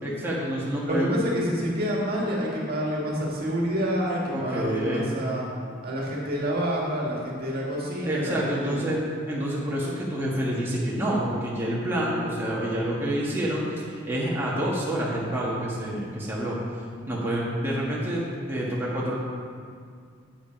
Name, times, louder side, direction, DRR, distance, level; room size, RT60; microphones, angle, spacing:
voice 1, 0.0-1.1 4.3-5.0 8.0-9.0 9.3-16.6 17.1-18.2 18.5-19.2, right 1 dB, 10° right, -7 dB, 1.5 m, -28 dB
voice 2, 0.9-5.5 5.8-8.9, equal, 50° right, -3 dB, 2.0 m, -28 dB
8.6 x 8.3 x 5.3 m, 2.2 s
head